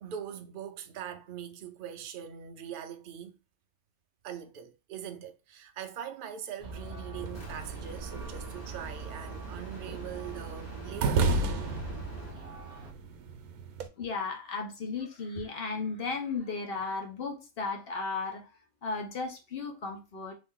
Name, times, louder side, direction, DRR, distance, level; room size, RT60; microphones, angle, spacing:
voice 1, 0.0-3.4 4.2-11.5, right 9 dB, 70° right, 0.5 m, -42 dB
sound 1, 6.6-12.4, right 3 dB, 10° left, 1.2 m, -43 dB
Church bell, 6.6-12.9, right 3 dB, 35° right, 0.8 m, -48 dB
sound 2, 7.2-13.9, right 3 dB, 85° right, 1.1 m, -34 dB
voice 2, 14.0-18.4 18.8-20.3, left 4 dB, 50° left, 0.9 m, -35 dB
2.9 x 2.9 x 3.6 m
omnidirectional pair, 1.5 m